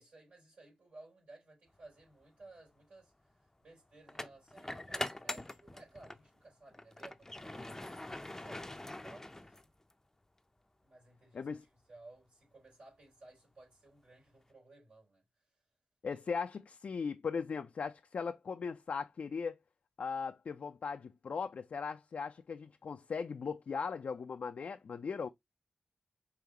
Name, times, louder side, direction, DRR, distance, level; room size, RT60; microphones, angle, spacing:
voice 1, 0.0-3.1 3.6-9.6 10.8-15.2 16.1-16.2, right 2 dB, 75° right, 3.6 m, -58 dB
sound 1, 2.0-2.2 4.1-6.3 6.7-9.9, left 1 dB, 15° left, 0.5 m, -43 dB
voice 2, 16.0-19.6 20.0-25.3, left 5 dB, 70° left, 0.4 m, -38 dB
5.0 x 3.0 x 2.8 m
cardioid pair, 55°, 3 cm